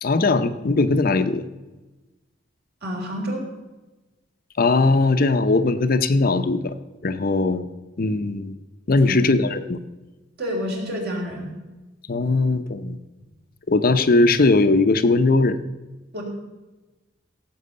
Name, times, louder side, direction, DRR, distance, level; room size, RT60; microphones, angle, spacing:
voice 1, 0.0-1.5 4.6-6.8 7.0-7.6 8.0-8.6 8.9-9.8 12.1-13.0 13.7-15.6, left 3 dB, 50° left, 10 dB, 0.7 m, -19 dB
voice 2, 2.8-3.4 9.0-9.3 10.4-11.5 16.1-16.2, equal, 55° right, 0 dB, 3.7 m, -29 dB
16.5 x 7.7 x 6.6 m, 1.1 s
head